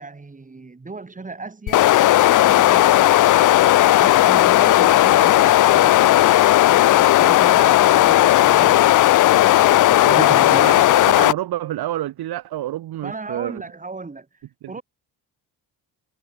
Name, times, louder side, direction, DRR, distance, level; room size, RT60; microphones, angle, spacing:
voice 1, 0.0-2.0 2.4-3.3 4.0-9.0 10.1-10.6 13.0-14.3 14.7-14.8, right 3 dB, 20° right, 6.5 m, -35 dB
sound 1, 1.7-11.3, left 14 dB, 55° left, 0.5 m, -14 dB
voice 2, 9.9-13.6 14.6-14.8, right 14 dB, 80° right, 2.6 m, -29 dB
cardioid pair, 120°, 37 cm